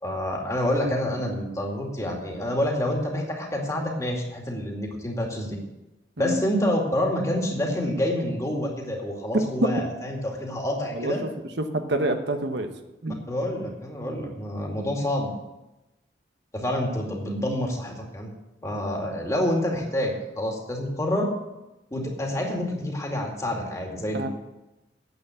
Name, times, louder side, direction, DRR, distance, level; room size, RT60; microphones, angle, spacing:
voice 1, 0.0-5.6 6.2-11.2 13.3-15.3 16.5-18.3 18.6-21.3 21.9-24.3, left 1 dB, 20° left, 0 dB, 2.2 m, -27 dB
voice 2, 11.0-11.3 11.6-12.7 13.0-13.2 24.1-24.3, right 2 dB, 75° right, 6 dB, 1.1 m, -27 dB
9.3 x 8.4 x 8.2 m, 1.0 s
head